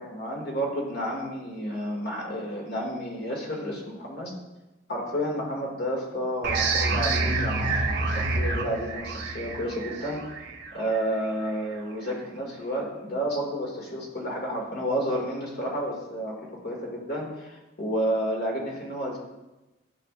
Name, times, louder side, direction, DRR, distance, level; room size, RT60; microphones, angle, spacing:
voice 1, 0.0-4.4 4.9-10.2 10.7-19.2, equal, 50° left, -2 dB, 2.1 m, -31 dB
sound 1, 6.4-11.8, right 3 dB, 55° right, 1.0 m, -28 dB
14.0 x 5.8 x 2.5 m, 1.0 s
head